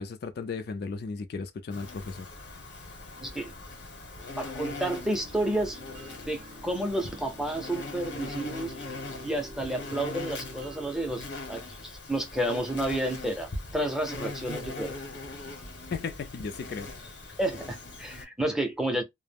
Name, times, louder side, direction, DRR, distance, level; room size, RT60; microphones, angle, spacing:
voice 1, 0.0-2.6 15.9-17.1, left 4 dB, 55° left, 0.3 m, -36 dB
Insect, 1.7-18.2, left 2 dB, 75° left, 1.0 m, -41 dB
voice 2, 3.2-3.5 4.4-5.8 6.3-8.7 9.2-15.0 17.4-19.0, right 1 dB, 5° right, 0.5 m, -31 dB
sound 1, 5.0-11.2, right 1 dB, 45° right, 0.6 m, -48 dB
2.2 x 2.1 x 3.3 m
head